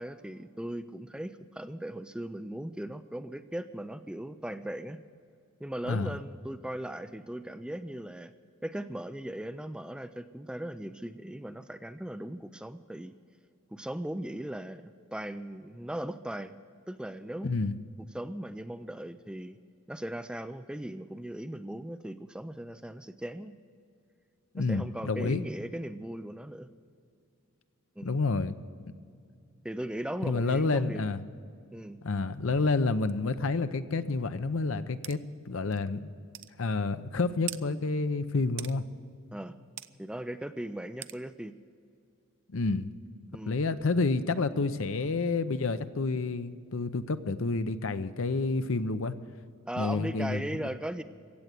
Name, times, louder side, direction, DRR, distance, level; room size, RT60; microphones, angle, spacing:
voice 1, 0.0-5.0 5.6-8.3 8.6-13.1 13.7-16.5 16.9-17.6 18.1-19.6 19.9-23.5 24.5-26.7 28.0-28.2 29.6-31.0 31.7-32.0 39.3-39.6 40.0-41.5 43.3-43.6 49.7-51.0, right 1 dB, 5° right, 10 dB, 0.3 m, -38 dB
voice 2, 5.8-6.1 17.4-17.8 24.5-25.4 28.0-28.5 30.2-31.2 32.0-35.2 35.5-36.1 36.6-38.9 42.5-42.9 43.5-49.2 49.8-50.7, left 3 dB, 65° left, 12 dB, 0.7 m, -29 dB
sound 1, 35.0-35.2 35.7-35.8 36.3-36.5 37.5-37.6 38.6-38.8 39.8-39.9 41.0-41.2, right 13 dB, 55° right, 0.5 m, -40 dB
15.5 x 8.1 x 9.1 m, 2.4 s
head